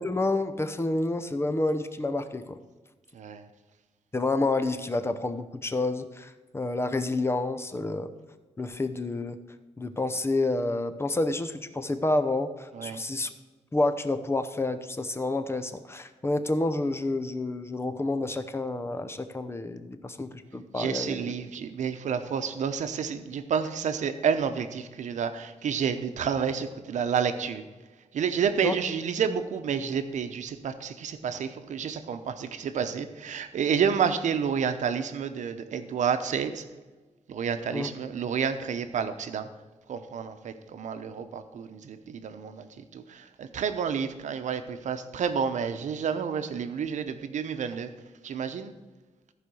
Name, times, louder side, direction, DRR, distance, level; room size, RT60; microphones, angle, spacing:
voice 1, 0.0-2.6 4.1-8.1 8.6-9.4 9.8-13.3 13.7-21.2 28.6-28.7 37.7-37.9, left 2 dB, 20° left, 10 dB, 0.7 m, -29 dB
voice 2, 3.1-3.5 12.7-13.0 20.7-27.6 28.1-36.6 37.3-39.5 39.9-47.9 48.2-48.7, right 7 dB, 90° right, 9 dB, 0.8 m, -30 dB
14.5 x 4.9 x 6.2 m, 1.3 s
wide cardioid pair, 125°, 12 cm